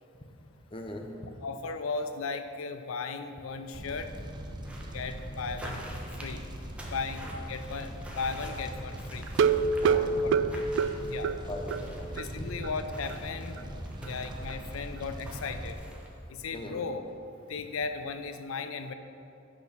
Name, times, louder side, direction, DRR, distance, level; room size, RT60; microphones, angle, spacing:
voice 1, 0.7-1.1 9.8-10.2 11.5-12.5 16.5-16.8, left 1 dB, 25° left, 3 dB, 0.8 m, -40 dB
voice 2, 1.4-4.1 4.9-5.8 6.2-6.4 6.9-9.3 10.2-10.6 11.1-11.3 12.2-13.6 14.0-15.8 16.3-17.0 17.5-18.9, left 4 dB, 90° left, 9 dB, 0.5 m, -36 dB
Fire, 3.7-15.7, right 1 dB, 20° right, 0.7 m, -40 dB
sound 1, 4.6-16.2, right 1 dB, 5° right, 1.1 m, -48 dB
sound 2, 9.3-11.9 12.2-12.3 12.6-12.7 13.1-13.2, right 5 dB, 65° right, 0.3 m, -26 dB
8.6 x 6.1 x 6.0 m, 2.7 s
head